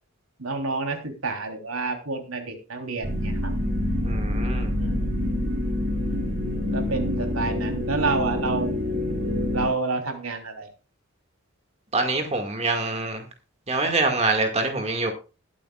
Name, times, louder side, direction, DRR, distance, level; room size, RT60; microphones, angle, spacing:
voice 1, 0.4-3.5 4.8-5.1 6.7-8.7 9.5-10.7, right 3 dB, 85° right, 4 dB, 3.4 m, -29 dB
sound 1, 3.0-9.7, left 1 dB, 65° right, 3.5 m, -26 dB
voice 2, 4.0-4.7 11.9-13.2 13.7-15.1, right 3 dB, 30° right, 4 dB, 2.0 m, -25 dB
21.0 x 8.6 x 2.4 m, 0.32 s
head